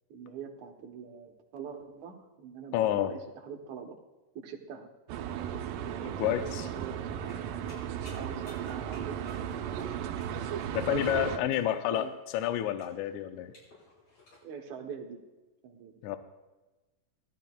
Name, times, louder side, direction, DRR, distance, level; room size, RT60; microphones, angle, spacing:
voice 1, 0.1-4.0 4.4-4.9 5.8-7.4 8.1-9.7 10.7-12.1 14.4-15.2 15.6-16.0, right 6 dB, 70° right, 3 dB, 2.3 m, -44 dB
voice 2, 2.7-3.2 6.2-6.7 10.7-13.5 16.0-16.2, left 12 dB, 80° left, 9 dB, 1.8 m, -29 dB
sound 1, 5.1-11.4, right 9 dB, 85° right, 2.3 m, -35 dB
sound 2, 7.2-14.4, left 1 dB, 55° left, 6.3 m, -56 dB
17.0 x 13.5 x 2.3 m, 1.1 s
omnidirectional pair, 3.7 m